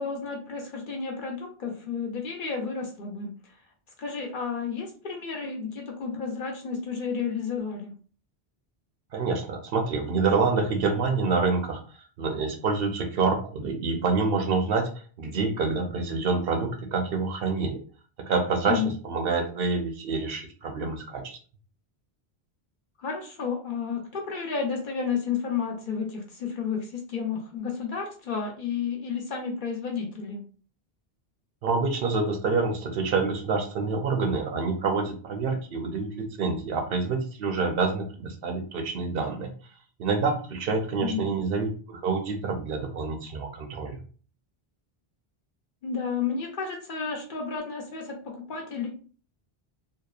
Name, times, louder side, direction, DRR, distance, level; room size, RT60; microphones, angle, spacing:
voice 1, 0.0-3.3 4.0-7.9 18.7-18.9 23.0-30.4 41.0-41.2 45.8-48.9, left 6 dB, 60° left, 1 dB, 0.7 m, -31 dB
voice 2, 9.1-11.8 12.2-14.9 15.2-17.8 18.2-21.4 31.6-39.5 40.0-44.0, right 4 dB, 70° right, 4 dB, 0.7 m, -27 dB
2.7 x 2.1 x 2.3 m, 0.41 s
omnidirectional pair, 1.1 m